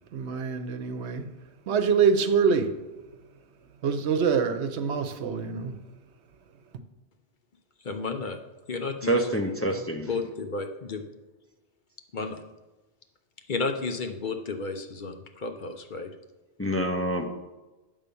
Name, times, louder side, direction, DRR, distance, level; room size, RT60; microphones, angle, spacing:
voice 1, 0.1-1.3 1.7-2.7 3.8-5.8, right 6 dB, 80° right, 1.0 m, -25 dB
voice 2, 7.8-8.4 8.7-11.0 12.1-12.4 13.5-16.1, left 4 dB, 50° left, 0.8 m, -33 dB
voice 3, 9.1-10.1 16.6-17.3, right 1 dB, 15° left, 0.5 m, -26 dB
10.0 x 3.7 x 6.8 m
omnidirectional pair, 1.1 m